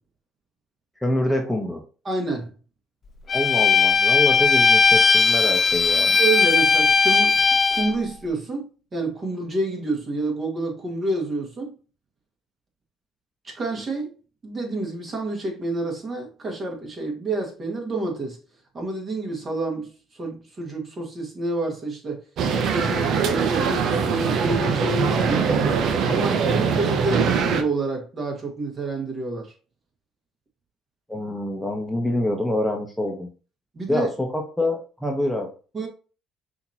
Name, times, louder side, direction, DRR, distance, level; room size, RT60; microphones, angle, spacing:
voice 1, 1.0-1.8 3.3-6.1 31.1-33.3 33.9-35.5, left 1 dB, 5° left, 1.0 m, -26 dB
voice 2, 2.0-2.5 6.1-11.7 13.4-14.1 14.4-18.4 18.7-22.2 22.5-29.5 33.7-34.1 35.7-35.9, right 2 dB, 35° right, 1.9 m, -28 dB
Bowed string instrument, 3.3-7.9, left 5 dB, 40° left, 0.8 m, -18 dB
sound 1, 22.4-27.6, right 6 dB, 60° right, 0.7 m, -22 dB
5.7 x 2.9 x 2.9 m
supercardioid pair, 80°, 0 cm